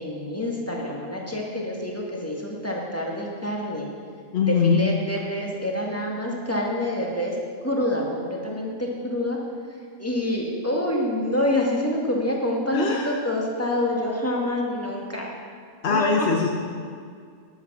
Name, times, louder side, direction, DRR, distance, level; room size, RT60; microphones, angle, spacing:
voice 1, 0.0-3.8 4.4-7.3 7.6-9.4 10.0-15.3 15.9-16.3, left 1 dB, 10° left, -2 dB, 1.8 m, -27 dB
voice 2, 4.3-4.8 12.7-13.1 15.8-16.5, left 5 dB, 55° left, 1 dB, 1.1 m, -21 dB
11.5 x 8.6 x 6.1 m, 2.1 s
omnidirectional pair, 1.4 m